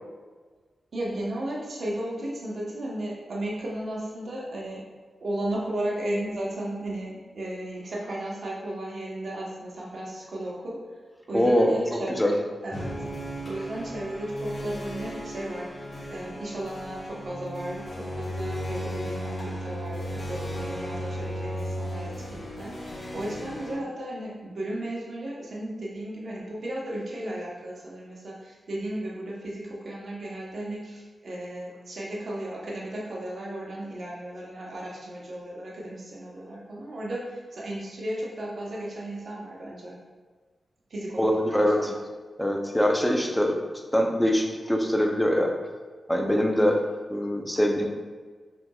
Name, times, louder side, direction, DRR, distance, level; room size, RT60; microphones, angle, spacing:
voice 1, 0.9-4.8 5.2-10.8 11.3-12.3 12.6-13.0 13.5-15.7 16.1-39.9 40.9-41.2 41.5-42.0, right 1 dB, 70° right, -4 dB, 1.1 m, -35 dB
voice 2, 11.3-11.7 12.2-12.3 41.2-41.9 42.4-43.5 43.9-45.5 46.1-46.8 47.1-47.9, equal, 10° left, 2 dB, 0.7 m, -23 dB
sound 1, 12.7-23.7, equal, 55° left, 1.2 m, -35 dB
5.6 x 3.5 x 2.4 m, 1.4 s
cardioid pair, 55°, 0 cm